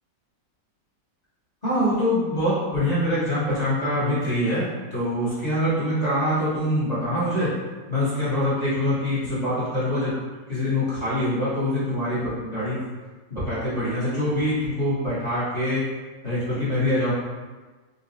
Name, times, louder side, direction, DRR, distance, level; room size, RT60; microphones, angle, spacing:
voice 1, 1.6-7.5 7.9-10.1 10.5-12.8 13.3-15.8 16.2-17.1, left 1 dB, 25° left, -12 dB, 1.1 m, -24 dB
4.0 x 2.7 x 2.7 m, 1.3 s
omnidirectional pair, 2.0 m